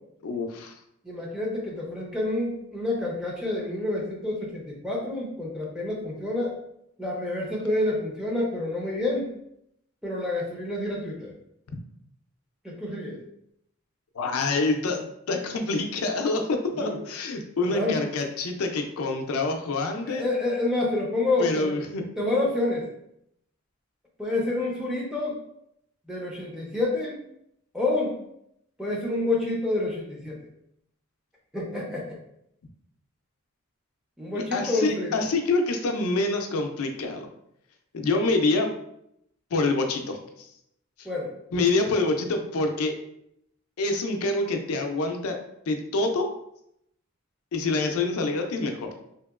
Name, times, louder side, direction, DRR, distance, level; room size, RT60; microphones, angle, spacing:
voice 1, 0.2-0.7 14.1-20.2 21.4-22.0 34.3-37.3 37.9-38.7 39.5-40.2 41.0-41.1 41.5-42.9 43.8-45.4 45.7-46.3 47.5-48.9, left 3 dB, 75° left, 4 dB, 0.4 m, -26 dB
voice 2, 1.0-6.5 7.0-9.3 10.0-11.3 12.6-13.2 16.7-17.0 17.6-18.0 20.0-21.7 22.2-22.9 24.2-25.4 26.1-27.2 27.7-28.2 28.8-30.4 31.5-32.2 34.2-35.3 41.0-41.3, left 2 dB, 5° right, -4 dB, 0.5 m, -28 dB
2.8 x 2.8 x 2.3 m, 0.76 s
head